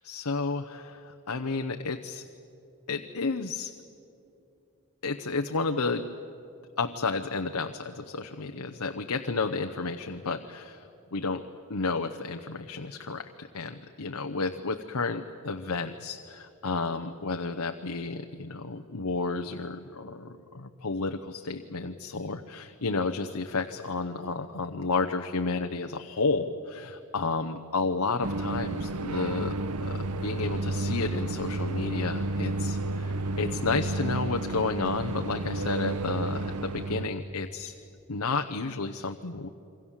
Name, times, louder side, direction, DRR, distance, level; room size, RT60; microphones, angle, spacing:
voice 1, 0.0-2.2 2.9-3.7 5.0-6.1 6.8-10.8 11.1-37.7 38.1-39.5, left 4 dB, 90° left, 6 dB, 0.9 m, -31 dB
sound 1, 28.2-37.1, right 2 dB, 90° right, 0.9 m, -31 dB
28.0 x 24.0 x 7.4 m, 2.6 s
head